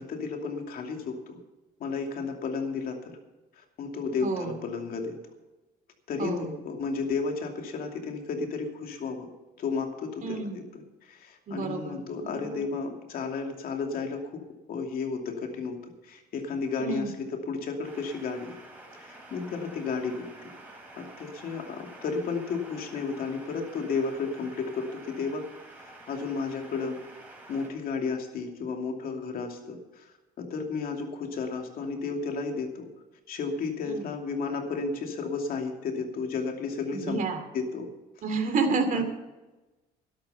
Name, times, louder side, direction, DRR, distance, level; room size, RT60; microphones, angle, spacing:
voice 1, 0.0-1.4 1.8-3.2 3.6-5.2 6.1-9.3 9.6-14.4 14.7-15.8 16.0-18.6 18.9-20.3 21.0-25.4 25.7-27.0 27.5-30.1 30.4-32.9 33.3-37.2 37.5-37.9 38.9-39.0, left 4 dB, 60° left, 3 dB, 2.7 m, -33 dB
voice 2, 4.2-4.5 6.2-6.6 10.2-10.6 11.5-12.6 16.8-17.2 33.8-34.1 36.9-37.4 38.2-39.0, right 4 dB, 50° right, 6 dB, 2.6 m, -30 dB
sound 1, 17.8-27.7, right 2 dB, 10° right, 4.1 m, -49 dB
12.5 x 11.5 x 5.7 m, 1.1 s
cardioid pair, 110°, 17 cm